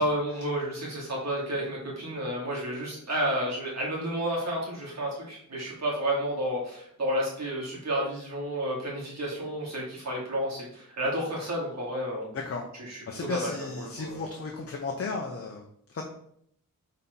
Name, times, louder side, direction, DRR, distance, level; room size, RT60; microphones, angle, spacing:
voice 1, 0.0-12.3 12.9-14.2, equal, 55° right, -5 dB, 2.5 m, -31 dB
voice 2, 12.3-12.6 13.1-16.1, left 4 dB, 45° left, 1 dB, 0.7 m, -34 dB
4.3 x 4.2 x 5.3 m, 0.68 s
wide cardioid pair, 180°, 34 cm